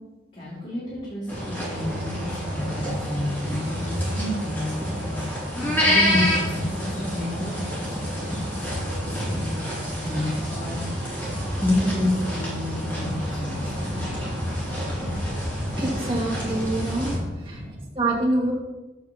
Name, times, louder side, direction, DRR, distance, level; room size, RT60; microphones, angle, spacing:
voice 1, 0.3-11.3 11.6-14.6 17.3-17.9, left 1 dB, 40° left, -9 dB, 2.4 m, -30 dB
sound 1, 1.3-17.2, equal, 10° left, 2.4 m, -28 dB
voice 2, 15.6-18.5, right 2 dB, 30° right, -3 dB, 1.9 m, -26 dB
7.3 x 4.7 x 6.4 m, 1.1 s
head